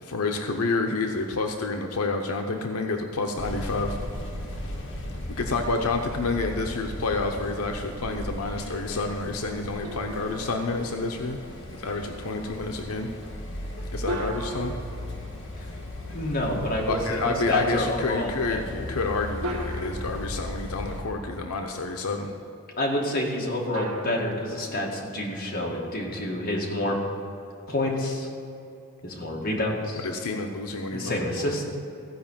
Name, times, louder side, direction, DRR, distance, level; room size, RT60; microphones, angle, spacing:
voice 1, 0.0-4.0 5.3-11.4 11.8-13.1 13.9-14.7 16.8-22.3 30.0-31.5, left 3 dB, 85° left, 3 dB, 0.7 m, -29 dB
sound 1, 3.4-21.0, left 1 dB, 60° left, 1.7 m, -37 dB
sound 2, 9.8-11.3 14.1-16.1 17.8-17.9 19.4-21.3 23.7-25.8, equal, 70° right, 1.1 m, -38 dB
voice 2, 16.1-18.9 22.8-27.0 27.7-28.3 29.0-30.0 30.9-31.8, left 1 dB, 40° left, -2 dB, 1.9 m, -28 dB
15.0 x 5.1 x 7.3 m, 2.8 s
head